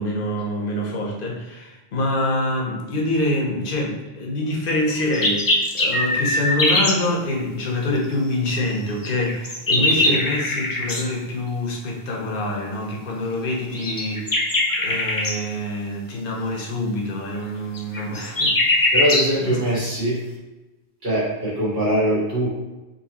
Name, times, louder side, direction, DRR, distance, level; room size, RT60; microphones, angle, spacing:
voice 1, 0.0-18.9 19.4-19.6, left 1 dB, 60° left, -1 dB, 0.9 m, -26 dB
sound 1, 4.9-7.0 9.0-11.0 13.7-15.4 17.7-19.3, left 1 dB, 35° left, 0.3 m, -21 dB
voice 2, 9.8-10.2 18.9-20.2 21.0-22.5, equal, 65° right, -8 dB, 1.8 m, -22 dB
4.2 x 3.3 x 2.8 m, 1.1 s
omnidirectional pair, 1.1 m